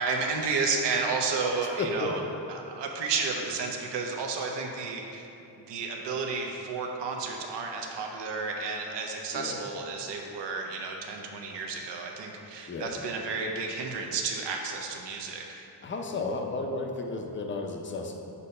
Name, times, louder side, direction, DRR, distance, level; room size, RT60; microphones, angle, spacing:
voice 1, 0.0-2.2 2.5-5.3 5.7-15.7, right 4 dB, 75° right, 1 dB, 0.8 m, -32 dB
voice 2, 1.6-2.3 9.3-9.6 12.7-12.9 15.8-18.2, left 3 dB, 30° left, 3 dB, 0.5 m, -33 dB
8.3 x 2.8 x 5.3 m, 2.8 s
wide cardioid pair, 165°, 43 cm